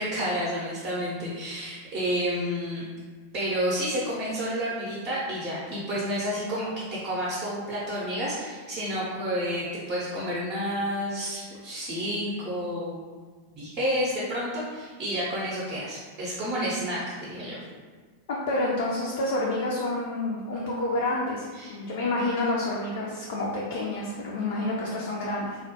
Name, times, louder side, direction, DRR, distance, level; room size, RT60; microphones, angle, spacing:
voice 1, 0.0-2.8 3.3-13.0 13.5-17.6 21.5-21.8, equal, 40° right, -7 dB, 0.6 m, -30 dB
voice 2, 18.3-25.6, left 2 dB, 55° left, -4 dB, 0.3 m, -28 dB
2.2 x 2.1 x 2.7 m, 1.5 s
figure-of-eight pair, 90°, 0 cm